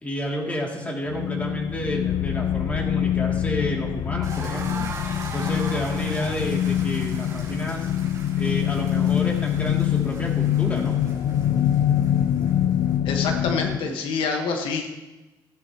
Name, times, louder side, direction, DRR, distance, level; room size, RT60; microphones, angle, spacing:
voice 1, 0.0-4.8 5.3-7.9 8.4-11.0, equal, 15° left, -1 dB, 2.6 m, -30 dB
sound 1, 1.1-13.8, left 11 dB, 65° left, 0.4 m, -24 dB
sound 2, 4.2-13.0, right 4 dB, 50° right, 4.6 m, -40 dB
voice 2, 13.0-14.9, left 4 dB, 90° left, 3 dB, 1.4 m, -26 dB
16.5 x 10.0 x 3.0 m, 1.1 s
cardioid pair, 125°, 8 cm